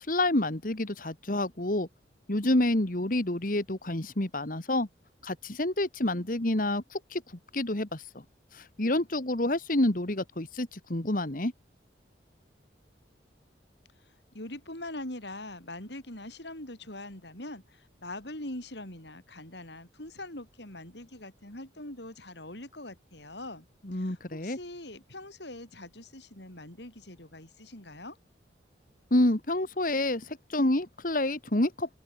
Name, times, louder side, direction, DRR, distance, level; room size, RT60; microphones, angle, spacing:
voice 1, 0.0-1.9 2.3-4.9 5.2-7.2 7.5-8.0 8.5-11.5 23.8-24.6 29.1-32.0, left 1 dB, 45° left, 1.9 m, -28 dB
voice 2, 14.0-23.7 23.9-28.2, left 1 dB, 70° left, 7.5 m, -43 dB
open air
head